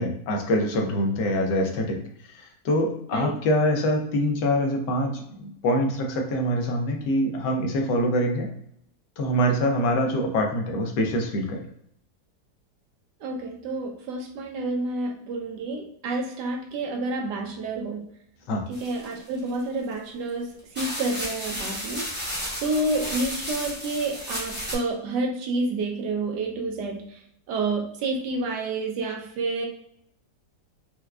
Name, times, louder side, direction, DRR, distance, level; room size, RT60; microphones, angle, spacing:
voice 1, 0.0-2.0 2.3-8.5 9.2-11.6 18.5-18.6, equal, 75° left, 2 dB, 1.3 m, -24 dB
voice 2, 13.2-18.0 18.7-22.1 22.6-27.2 27.5-29.7, right 2 dB, 75° right, 1 dB, 1.1 m, -29 dB
sound 1, 18.7-19.6 20.3-20.4 20.8-24.8, equal, 10° right, 0.7 m, -33 dB
4.5 x 2.2 x 2.3 m, 0.71 s
omnidirectional pair, 1.9 m